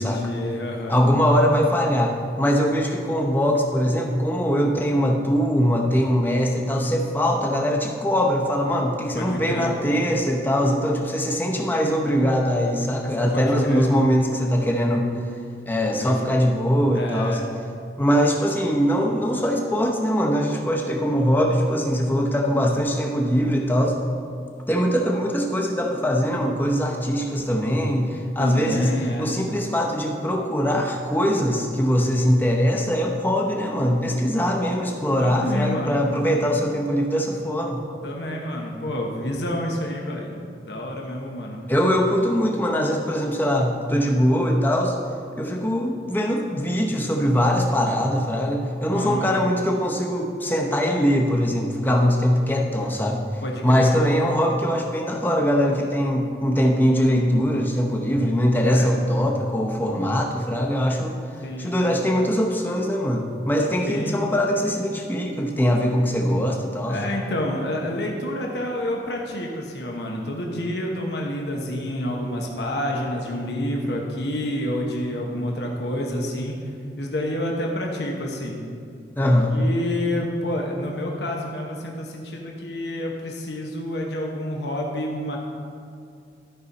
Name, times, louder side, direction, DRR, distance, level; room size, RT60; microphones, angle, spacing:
voice 1, 0.0-1.0 9.1-9.8 13.3-13.9 16.0-16.2 16.9-17.5 28.4-29.3 35.2-36.0 38.0-41.6 48.9-49.3 53.4-53.9 58.7-58.9 61.4-61.7 63.8-64.2 66.9-76.6 77.0-78.6 79.2-85.4, left 1 dB, 75° left, 0 dB, 1.0 m, -28 dB
voice 2, 0.9-15.1 15.7-17.4 18.0-24.0 24.7-28.9 29.2-37.8 41.7-45.0 45.4-53.2 53.6-61.1 61.6-67.0 79.1-79.5, equal, 10° left, 1 dB, 0.7 m, -22 dB
12.5 x 5.3 x 4.1 m, 2.4 s
head